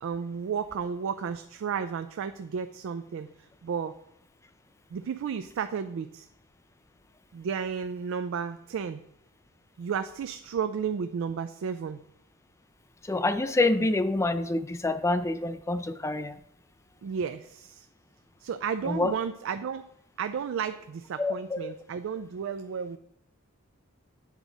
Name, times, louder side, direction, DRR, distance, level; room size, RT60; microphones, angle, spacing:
voice 1, 0.0-3.9 4.9-6.3 7.3-9.0 9.8-12.0 17.0-17.9 18.4-19.8 20.2-23.0, right 6 dB, 65° right, 10 dB, 0.3 m, -33 dB
voice 2, 13.0-16.4 18.8-19.1 21.2-21.7, left 2 dB, 15° left, 10 dB, 0.3 m, -27 dB
8.2 x 4.8 x 3.9 m, 0.73 s
head